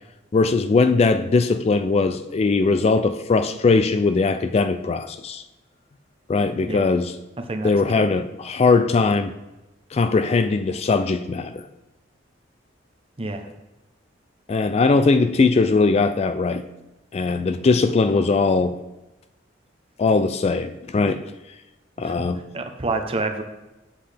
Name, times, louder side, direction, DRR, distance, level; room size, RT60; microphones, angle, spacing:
voice 1, 0.3-5.4 6.3-7.1 7.6-9.3 9.9-11.7 14.5-16.6 17.1-18.8 20.0-21.2 22.0-22.4, left 4 dB, 35° left, 10 dB, 0.3 m, -20 dB
voice 2, 22.5-23.4, right 3 dB, 30° right, 5 dB, 0.7 m, -27 dB
7.7 x 7.5 x 3.4 m, 1.0 s
head